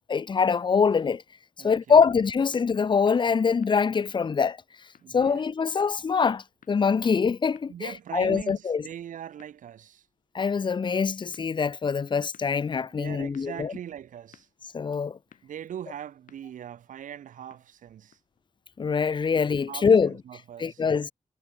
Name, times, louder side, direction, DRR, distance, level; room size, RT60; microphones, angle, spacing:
voice 1, 0.1-1.2 1.6-4.6 5.1-8.8 10.3-13.7 14.7-15.2 18.8-20.1 20.6-21.1, left 5 dB, 35° left, 0.6 m, -24 dB
voice 2, 1.6-2.0 5.0-5.5 7.7-10.1 12.9-14.5 15.4-18.2 19.3-20.8, right 10 dB, 85° right, 0.8 m, -41 dB
sound 1, 3.6-18.5, left 8 dB, 85° left, 7.9 m, -63 dB
wide cardioid pair, 105°, 13 cm